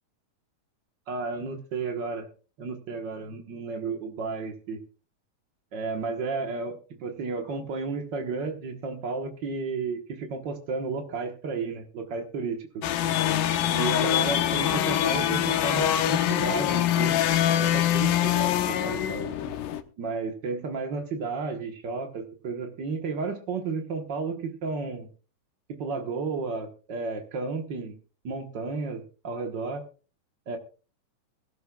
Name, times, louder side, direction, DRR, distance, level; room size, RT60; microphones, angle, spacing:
voice 1, 1.1-2.3 2.6-4.8 5.7-12.8 13.7-17.2 17.6-19.3 20.0-25.1 25.7-27.9 28.2-29.8 30.5-30.6, right 4 dB, 70° right, 4 dB, 1.0 m, -32 dB
sound 1, 12.8-19.8, left 11 dB, 75° left, 2.4 m, -24 dB
21.0 x 13.0 x 2.3 m, 0.36 s
omnidirectional pair, 4.1 m